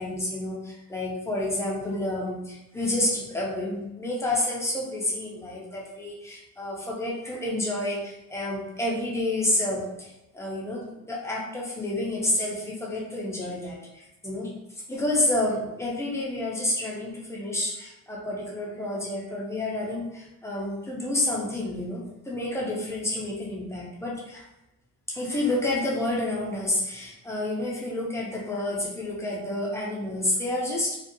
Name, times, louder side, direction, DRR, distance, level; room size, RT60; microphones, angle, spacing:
voice 1, 0.0-14.5 14.9-24.4 25.1-30.9, left 1 dB, 10° left, -4 dB, 0.3 m, -29 dB
2.6 x 2.1 x 2.6 m, 0.88 s
cardioid pair, 170°, 35 cm